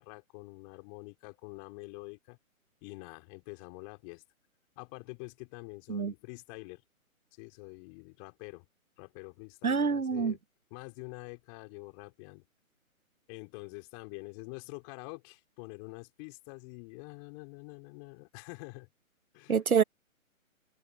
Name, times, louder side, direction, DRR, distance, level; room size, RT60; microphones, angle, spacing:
voice 1, 0.0-2.4 2.8-4.2 4.8-6.8 7.3-8.7 9.0-10.4 10.7-12.4 13.3-18.9 19.3-19.6, left 35 dB, 25° left, 4.2 m, -46 dB
voice 2, 9.6-10.3 19.5-19.8, right 6 dB, 85° right, 1.2 m, -26 dB
figure-of-eight pair, 140°, 42 cm